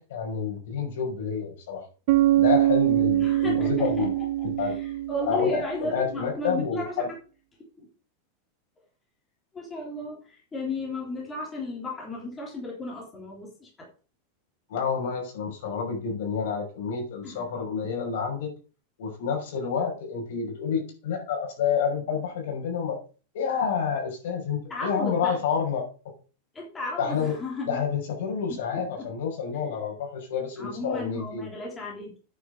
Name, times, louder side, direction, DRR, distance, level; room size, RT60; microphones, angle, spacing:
voice 1, 0.0-1.8 2.3-4.1 4.6-4.8 5.3-7.1 14.7-18.5 19.0-23.0 23.3-25.9 27.0-27.3 27.7-31.5, left 6 dB, 65° left, 2 dB, 5.6 m, -29 dB
Bass guitar, 2.1-5.9, right 14 dB, 50° right, 0.8 m, -23 dB
voice 2, 3.1-4.3 4.6-7.0 7.8-7.9 9.5-13.9 17.2-17.4 24.7-25.4 26.5-27.8 28.7-29.1 29.6-29.8 30.6-32.2, left 2 dB, 10° left, -2 dB, 3.6 m, -34 dB
9.4 x 7.3 x 6.6 m, 0.37 s
supercardioid pair, 175°, 0 cm